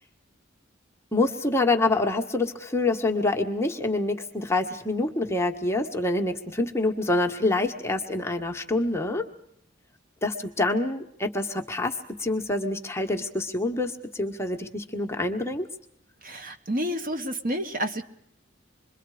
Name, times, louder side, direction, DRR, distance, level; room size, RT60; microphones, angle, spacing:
voice 1, 1.1-9.2 10.2-11.9 12.2-15.7, left 2 dB, 15° left, 3 dB, 1.5 m, -26 dB
voice 2, 16.2-18.0, equal, 45° right, 7 dB, 1.6 m, -29 dB
27.0 x 22.5 x 5.0 m, 0.71 s
head